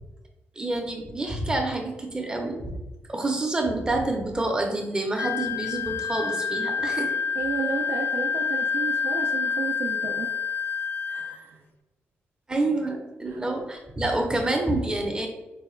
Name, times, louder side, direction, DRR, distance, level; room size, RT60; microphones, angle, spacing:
voice 1, 0.6-2.7 3.1-7.1 12.5-15.3, right 2 dB, 20° right, 2 dB, 0.6 m, -27 dB
Wind instrument woodwind instrument, 5.2-11.4, left 6 dB, 50° left, 0.3 m, -28 dB
voice 2, 7.3-10.3 11.1-11.6 13.3-13.4, right 5 dB, 85° right, 1 dB, 0.4 m, -32 dB
4.7 x 2.2 x 3.1 m, 1.0 s
cardioid pair, 115°, 4 cm